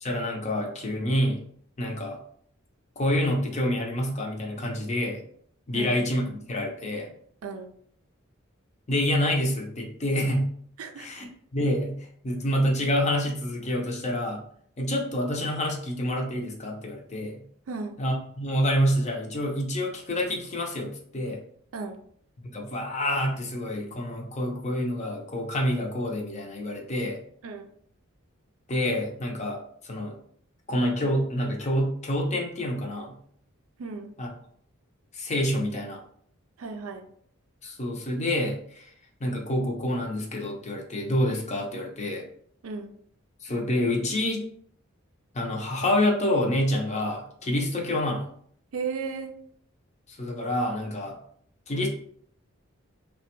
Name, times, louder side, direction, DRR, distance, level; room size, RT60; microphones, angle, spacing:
voice 1, 0.0-1.4 1.8-2.2 3.0-5.2 5.7-7.1 8.9-10.5 11.0-11.3 11.5-14.4 14.8-17.4 18.0-21.4 22.4-27.2 28.7-30.1 30.7-33.2 34.2-34.3 35.1-36.0 37.6-38.9 39.2-42.2 43.4-44.5 45.3-48.3 50.1-51.2 51.7-51.9, left 1 dB, 35° left, 1 dB, 0.6 m, -27 dB
voice 2, 33.8-34.1 36.6-37.1 42.6-42.9 48.7-49.3, right 4 dB, 80° right, 6 dB, 0.4 m, -34 dB
3.2 x 2.2 x 2.9 m, 0.62 s
head